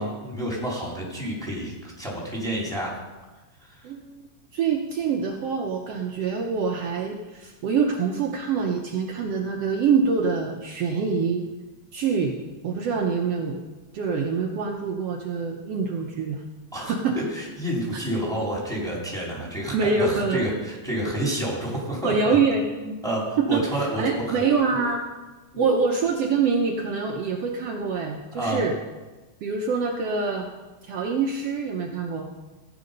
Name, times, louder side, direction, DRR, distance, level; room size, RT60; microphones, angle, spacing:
voice 1, 0.0-3.0 3.6-3.9 16.7-22.4 22.8-24.4 24.7-24.8 25.5-25.7 28.3-28.6, right 1 dB, ahead, -4 dB, 3.8 m, -29 dB
voice 2, 3.8-4.3 4.5-11.5 11.9-13.6 13.9-16.4 16.8-17.2 17.9-18.0 19.7-20.5 22.0-22.9 23.4-25.0 25.6-28.7 29.4-30.5 30.8-32.3, right 5 dB, 65° right, 2 dB, 1.8 m, -25 dB
15.5 x 9.2 x 5.4 m, 1.2 s
omnidirectional pair, 3.4 m